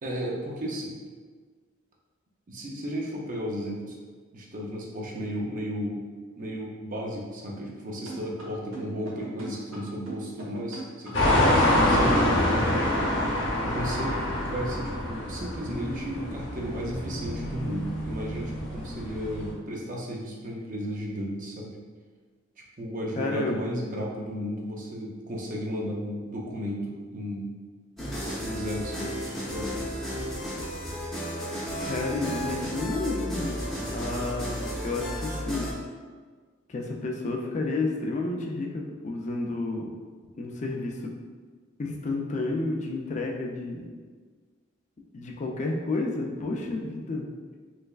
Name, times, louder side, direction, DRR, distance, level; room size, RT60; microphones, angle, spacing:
voice 1, 0.0-1.0 2.5-3.9 4.3-6.0 6.4-12.2 13.6-21.8 22.8-27.5 28.4-29.9, equal, 40° right, -2 dB, 0.5 m, -34 dB
sound 1, 8.1-13.4, right 2 dB, 85° right, 0.8 m, -40 dB
sound 2, 11.1-19.5, left 1 dB, 70° left, 0.8 m, -26 dB
voice 2, 23.2-23.6 31.8-33.6 33.9-35.7 36.7-39.9 40.4-41.1 41.8-43.9 45.1-47.2, left 2 dB, 35° left, 1 dB, 0.4 m, -31 dB
sound 3, 28.0-35.7, equal, ahead, 0.6 m, -33 dB
3.2 x 3.1 x 2.3 m, 1.5 s
head